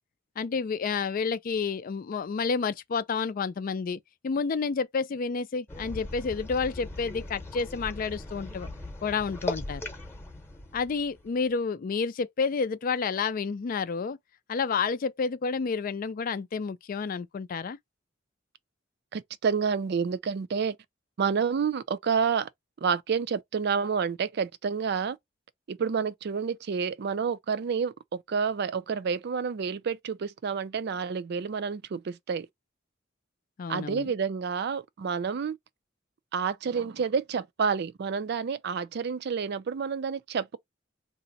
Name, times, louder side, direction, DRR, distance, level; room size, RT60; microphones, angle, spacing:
voice 1, 0.4-8.7 9.0-9.8 10.7-14.2 14.5-17.8 33.6-34.1, left 5 dB, 45° left, 0.4 m, -30 dB
sound 1, 5.7-11.5, left 2 dB, 10° left, 0.8 m, -39 dB
voice 2, 19.1-20.8 21.2-22.5 22.8-25.2 25.7-32.5 33.7-35.6 36.3-40.6, right 6 dB, 60° right, 0.4 m, -29 dB
2.6 x 2.1 x 3.9 m
head